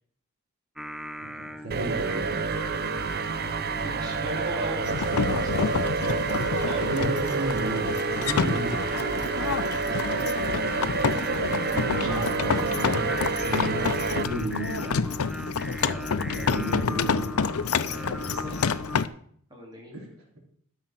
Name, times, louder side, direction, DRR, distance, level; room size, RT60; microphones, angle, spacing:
Singing, 0.8-19.0, equal, ahead, 0.4 m, -39 dB
voice 1, 1.2-2.8 6.8-8.7 11.6-13.0 13.4-15.1 16.3-17.3 19.9-20.1, right 1 dB, 80° right, 0 dB, 3.5 m, -33 dB
sound 1, 1.7-14.2, right 4 dB, 45° right, 0.6 m, -28 dB
voice 2, 3.8-5.8 6.5-6.8 9.2-9.8 11.8-12.3 15.8-16.1 17.6-18.6 19.5-20.0, right 1 dB, 20° right, -2 dB, 3.3 m, -39 dB
sound 2, 4.8-19.1, left 5 dB, 85° left, 0.6 m, -29 dB
13.0 x 6.6 x 6.0 m, 0.62 s
head